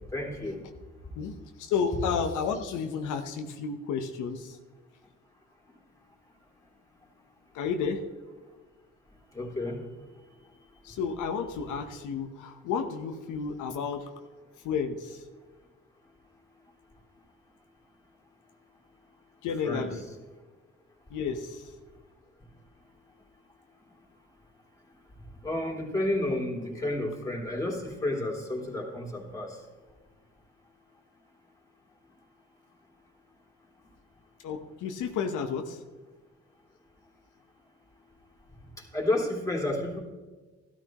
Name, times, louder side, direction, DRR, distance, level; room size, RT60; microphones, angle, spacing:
voice 1, 0.1-0.6 9.3-9.8 19.6-19.9 25.4-29.5 38.9-40.0, left 1 dB, 10° left, -2 dB, 3.1 m, -31 dB
voice 2, 1.1-4.6 7.5-8.1 10.8-14.1 14.6-15.3 19.4-20.0 21.1-21.7 34.4-35.8, left 6 dB, 85° left, 5 dB, 1.0 m, -32 dB
13.0 x 12.5 x 3.0 m, 1.3 s
cardioid pair, 90°, 30 cm